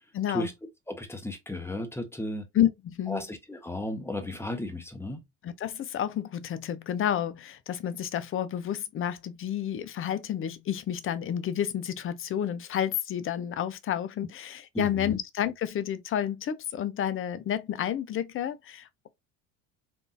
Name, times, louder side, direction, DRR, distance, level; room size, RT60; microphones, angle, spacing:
voice 1, 0.1-0.5 2.5-3.2 5.4-19.1, left 10 dB, 35° left, 0.5 m, -30 dB
voice 2, 0.9-2.5 3.1-5.2 14.7-15.2, left 1 dB, 5° left, 0.8 m, -34 dB
3.5 x 2.5 x 2.5 m
hypercardioid pair, 70°, 39 cm